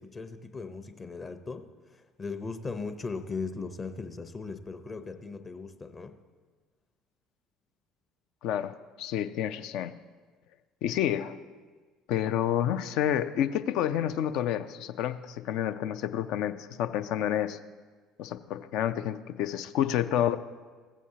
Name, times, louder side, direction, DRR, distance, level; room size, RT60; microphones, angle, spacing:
voice 1, 0.0-6.2, left 4 dB, 30° left, 8 dB, 0.8 m, -38 dB
voice 2, 8.4-10.0 10.8-11.4 12.1-17.6 18.2-20.4, left 10 dB, 60° left, 11 dB, 0.4 m, -29 dB
14.5 x 8.3 x 2.8 m, 1.4 s
figure-of-eight pair, 60°, 0 cm